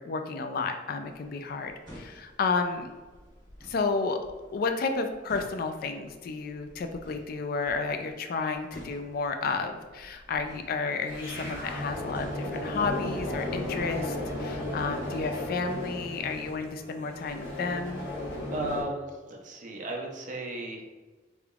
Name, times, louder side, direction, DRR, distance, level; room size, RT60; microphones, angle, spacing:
voice 1, 0.0-2.9 3.7-4.2 4.5-18.1, left 4 dB, 55° left, 6 dB, 0.3 m, -31 dB
sound 1, 1.0-14.4, equal, 25° right, 1.5 m, -52 dB
sound 2, 11.1-18.8, left 1 dB, 85° left, 1.3 m, -35 dB
voice 2, 18.5-20.8, right 2 dB, 45° right, 0 dB, 0.6 m, -35 dB
3.8 x 3.4 x 2.3 m, 1.3 s
head